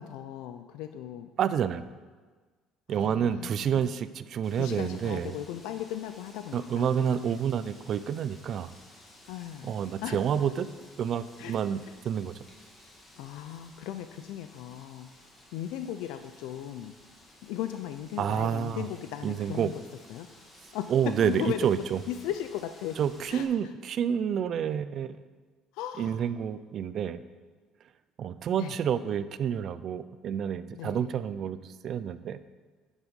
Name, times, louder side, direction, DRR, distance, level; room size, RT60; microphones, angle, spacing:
voice 1, 0.0-1.3 2.9-3.9 4.6-7.2 9.3-9.8 10.0-10.2 11.4-11.6 13.2-15.1 15.5-16.9 17.4-19.8 20.1-20.3 20.7-20.9 21.2-21.7 22.1-23.0 23.3-23.5 25.7-26.2 28.6-28.8 30.7-31.1, left 11 dB, 85° left, 9 dB, 0.5 m, -37 dB
voice 2, 1.4-1.9 2.9-5.3 6.5-8.7 9.6-10.7 11.0-12.3 18.2-18.9 19.2-19.7 20.9-22.0 23.0-25.1 26.0-27.2 28.2-32.4, right 8 dB, 45° right, 14 dB, 0.4 m, -29 dB
Wind, 4.4-23.4, left 1 dB, 20° left, 2.0 m, -55 dB
9.9 x 7.3 x 5.3 m, 1.4 s
cardioid pair, 145°, 0 cm